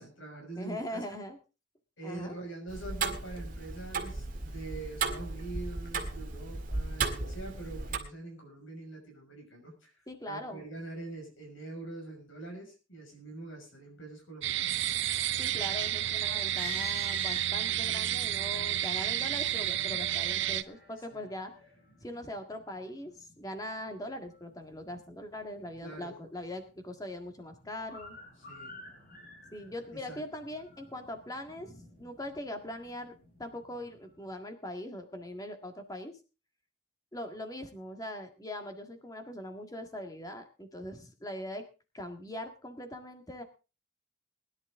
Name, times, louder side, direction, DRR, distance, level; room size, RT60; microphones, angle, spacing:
voice 1, 0.0-1.2 2.0-10.0 10.3-14.8 21.1-21.3 25.8-26.2 28.5-28.7 29.9-30.2, right 2 dB, 80° left, 2 dB, 6.1 m, -44 dB
voice 2, 0.6-1.4 2.0-2.4 10.1-10.6 15.4-21.5 22.0-28.2 29.5-33.1 33.4-36.1 37.1-41.6 41.9-43.4, left 1 dB, 20° left, 6 dB, 1.8 m, -41 dB
Tick-tock, 2.7-8.0, right 4 dB, 40° right, 1.9 m, -35 dB
sound 1, 14.4-20.6, right 12 dB, 65° right, 0.6 m, -31 dB
sound 2, 16.2-17.9 18.5-34.3, left 2 dB, 45° left, 5.8 m, -51 dB
20.5 x 11.0 x 3.7 m, 0.32 s
head